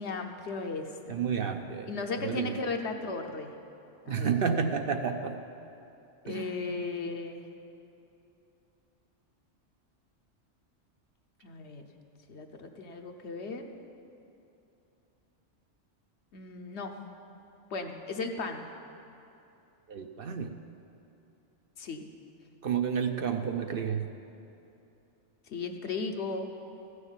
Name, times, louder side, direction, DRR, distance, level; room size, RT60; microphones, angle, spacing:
voice 1, 0.0-1.3 1.9-3.5 4.0-4.3 6.2-7.4 11.4-11.8 12.3-13.6 16.3-16.9 17.7-18.6 21.8-22.1 25.5-26.5, left 4 dB, 65° left, 5 dB, 1.2 m, -36 dB
voice 2, 1.1-1.9 2.2-2.6 4.1-5.4 6.3-6.9 19.9-20.5 22.6-24.0, right 7 dB, 60° right, 6 dB, 0.8 m, -31 dB
14.0 x 6.5 x 8.9 m, 2.8 s
omnidirectional pair, 1.2 m